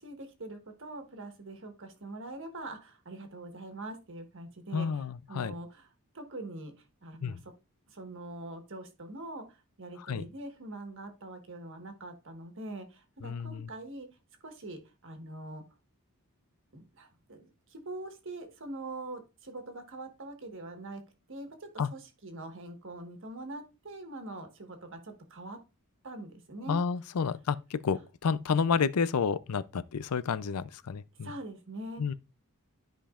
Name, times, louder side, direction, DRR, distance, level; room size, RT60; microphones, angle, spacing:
voice 1, 0.0-5.9 6.1-7.5 7.9-14.1 14.4-15.6 16.7-21.0 21.3-25.6 26.0-26.8 31.2-32.1, right 2 dB, 60° right, 1.5 m, -43 dB
voice 2, 4.7-5.5 7.2-7.4 10.1-10.2 13.2-13.7 21.8-21.9 26.7-31.3 32.0-32.1, left 5 dB, 90° left, 0.5 m, -30 dB
13.0 x 5.1 x 2.4 m
head